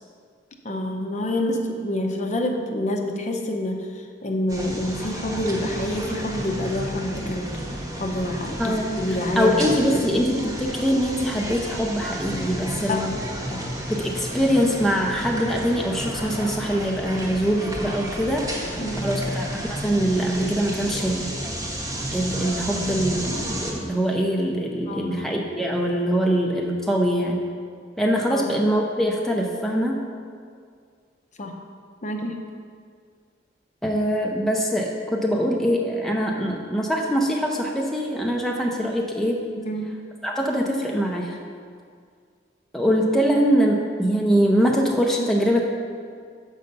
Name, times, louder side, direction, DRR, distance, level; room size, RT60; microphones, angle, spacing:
voice 1, 0.6-3.8 4.2-7.5 8.0-10.2 12.9-13.0 13.5-13.6 18.8-19.1 24.9-25.2 28.3-28.5 31.4-31.5 32.0-32.3 39.6-39.9, left 1 dB, 40° left, 3 dB, 0.6 m, -27 dB
sound 1, 4.5-23.7, equal, 20° right, 0.9 m, -32 dB
voice 2, 8.6-9.0 9.4-13.1 13.9-18.5 19.0-21.3 22.1-27.4 28.0-30.0 33.8-39.4 40.2-41.4 42.7-45.6, equal, ahead, -1 dB, 0.5 m, -23 dB
6.8 x 5.5 x 5.2 m, 2.1 s
head